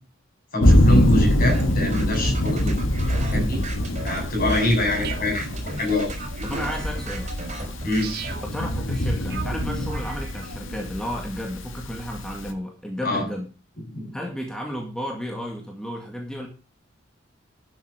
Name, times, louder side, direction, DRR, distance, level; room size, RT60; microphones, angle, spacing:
voice 1, 0.5-2.8 3.3-3.6 4.0-5.4 5.8-6.1 7.8-8.1 13.0-13.3 13.9-14.2, left 1 dB, 45° left, 2 dB, 7.6 m, -24 dB
Thunder, 0.6-12.5, left 1 dB, 75° left, 1.9 m, -24 dB
sound 1, 1.5-8.3, right 2 dB, 35° right, 4.4 m, -37 dB
sound 2, 5.0-10.9, right 4 dB, 50° right, 2.4 m, -38 dB
voice 2, 6.4-7.3 8.3-13.5 14.1-16.5, equal, 5° left, 1 dB, 2.0 m, -33 dB
12.5 x 8.0 x 5.9 m, 0.33 s
head